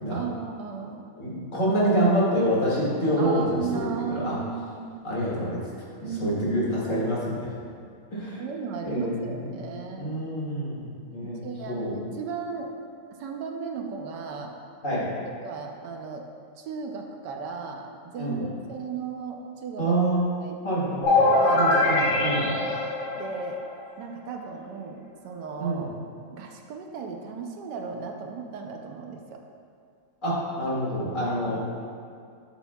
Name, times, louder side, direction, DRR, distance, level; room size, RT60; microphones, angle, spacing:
voice 1, 0.1-1.0 3.2-5.0 6.0-6.4 8.4-10.2 11.4-12.7 13.1-14.5 15.4-16.3 16.6-20.0 20.4-20.6 21.3-21.6 23.2-23.6 24.0-25.9 26.3-29.4 31.4-31.6, right 5 dB, 80° right, 3 dB, 1.3 m, -35 dB
voice 2, 1.2-4.3 5.0-5.6 6.0-7.5 8.1-8.4 8.8-9.4 10.0-10.8 11.1-11.4 11.7-11.9 14.8-15.0 18.2-18.4 19.8-20.3 20.6-21.3 21.5-22.5 25.6-25.8 30.2-31.6, right 1 dB, 45° left, -7 dB, 2.4 m, -26 dB
sound 1, 21.0-23.8, left 2 dB, 75° left, 2.2 m, -22 dB
12.0 x 7.2 x 2.3 m, 2.3 s
omnidirectional pair, 1.8 m